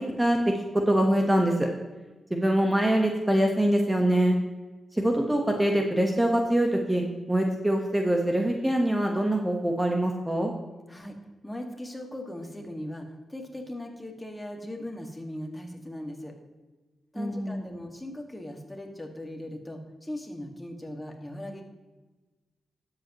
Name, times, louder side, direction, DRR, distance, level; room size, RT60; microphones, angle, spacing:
voice 1, 0.7-1.7 2.3-4.4 4.9-7.0 7.3-10.5 17.1-17.7, right 1 dB, 15° right, 2 dB, 1.3 m, -24 dB
voice 2, 11.4-16.3 17.1-21.6, left 1 dB, 15° left, 3 dB, 1.9 m, -39 dB
12.0 x 7.8 x 3.1 m, 1.2 s
cardioid pair, 60°, 0 cm